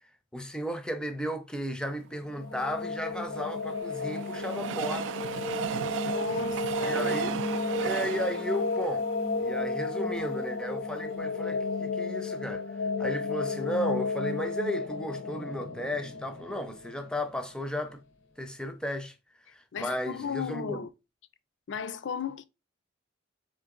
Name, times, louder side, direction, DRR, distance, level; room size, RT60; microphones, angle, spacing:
voice 1, 0.3-5.2 6.8-7.4 7.8-9.1 9.4-12.7 13.0-18.0 18.4-19.1 19.5-20.8, equal, 5° left, 0.5 m, -34 dB
sound 1, 2.1-17.1, left 3 dB, 90° left, 0.8 m, -33 dB
Train, 2.9-10.2 10.7-10.8 11.0-11.1, right 8 dB, 70° right, 0.3 m, -35 dB
voice 2, 6.0-7.4 19.7-20.9 21.7-22.5, left 7 dB, 65° left, 0.4 m, -36 dB
3.8 x 3.2 x 3.7 m
head